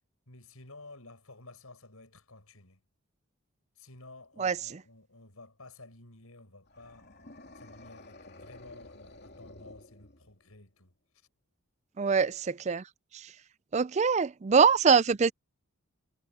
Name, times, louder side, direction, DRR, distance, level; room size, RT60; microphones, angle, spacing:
voice 1, 0.3-2.8 3.8-7.1 7.5-11.0, left 2 dB, 90° left, 7.9 m, -52 dB
voice 2, 4.4-4.8 12.0-12.9 13.1-13.3 13.7-15.3, right 5 dB, 30° right, 0.4 m, -24 dB
sound 1, 6.7-10.5, left 2 dB, 50° left, 3.0 m, -52 dB
head